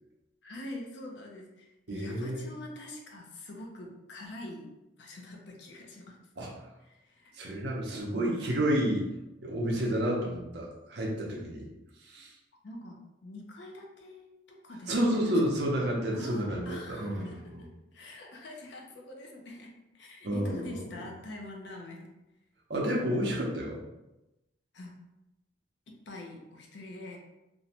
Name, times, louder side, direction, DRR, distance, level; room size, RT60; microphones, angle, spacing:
voice 1, 0.4-6.2 6.8-7.3 12.6-15.4 16.1-22.1 24.7-25.0 25.9-27.2, left 1 dB, 60° left, 0 dB, 0.5 m, -45 dB
voice 2, 1.9-2.5 6.4-6.5 7.3-9.1 9.4-11.7 12.0-12.3 14.9-17.6 20.2-20.8 22.7-23.8, equal, 60° right, -2 dB, 0.6 m, -30 dB
2.6 x 2.1 x 2.8 m, 0.96 s
head